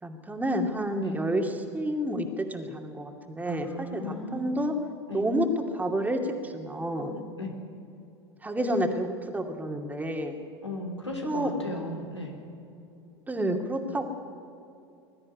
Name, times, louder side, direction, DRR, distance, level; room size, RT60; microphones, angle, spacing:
voice 1, 0.0-4.7 5.1-5.5 5.7-7.2 8.4-10.4 11.2-11.5 13.3-14.1, right 1 dB, 10° right, 3 dB, 2.4 m, -29 dB
voice 2, 3.4-4.5 5.1-5.2 7.4-7.6 10.6-12.3, left 1 dB, 90° left, 0 dB, 3.4 m, -36 dB
21.0 x 13.5 x 9.6 m, 2.7 s
figure-of-eight pair, 80°, 14 cm